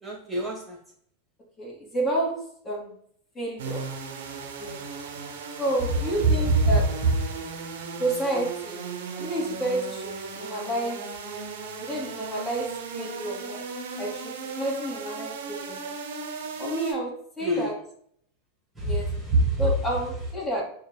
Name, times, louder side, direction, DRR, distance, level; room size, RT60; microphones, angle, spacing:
voice 1, 0.0-0.8 6.4-6.8 7.3-7.6 17.4-17.7 18.8-19.7, right 2 dB, 5° right, 1.2 m, -25 dB
voice 2, 1.6-2.9 3.3-3.8 4.6-4.8 5.6-6.9 8.0-8.8 9.2-11.1 11.8-13.6 14.0-15.9 16.6-17.8 18.8-19.1 19.6-20.6, right 1 dB, 25° left, 1.3 m, -30 dB
sound 1, 3.6-16.9, right 4 dB, 65° right, 0.6 m, -36 dB
6.3 x 2.2 x 2.3 m
figure-of-eight pair, 90°, 0 cm